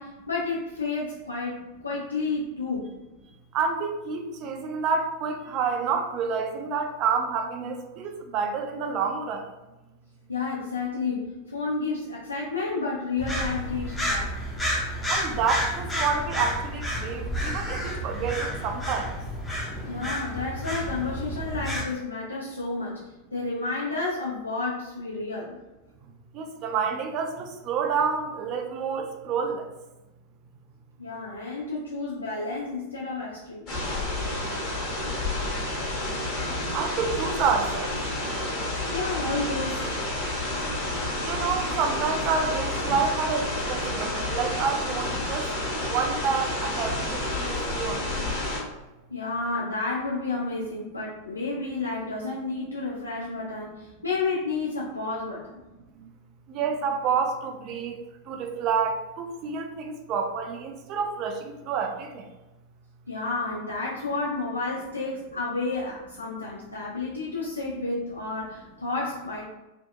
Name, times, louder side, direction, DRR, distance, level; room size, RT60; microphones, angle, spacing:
voice 1, 0.0-2.9 10.3-14.3 19.8-23.0 23.3-25.6 31.0-33.7 38.9-39.9 49.1-55.4 63.1-69.4, left 3 dB, 80° left, -5 dB, 0.3 m, -31 dB
voice 2, 3.5-9.4 15.1-19.1 26.3-29.7 36.7-37.9 41.2-45.5 45.8-48.3 56.5-58.0 58.3-62.3, right 5 dB, 40° right, 4 dB, 0.3 m, -28 dB
sound 1, 13.2-21.8, equal, 10° left, 0.6 m, -30 dB
sound 2, 33.7-48.6, left 2 dB, 30° left, 1.1 m, -30 dB
2.7 x 2.1 x 2.2 m, 1.1 s
figure-of-eight pair, 90°, 0 cm